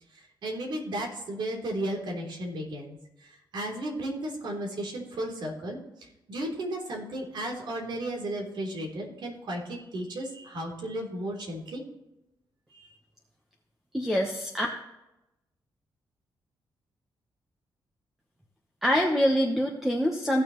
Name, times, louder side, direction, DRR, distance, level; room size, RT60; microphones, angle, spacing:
voice 1, 0.4-11.8 12.7-12.9, right 1 dB, 70° right, 0 dB, 3.3 m, -34 dB
voice 2, 13.9-14.7 18.8-20.4, equal, 5° right, 1 dB, 1.1 m, -25 dB
16.5 x 6.7 x 3.1 m, 0.91 s
cardioid pair, 115°, 8 cm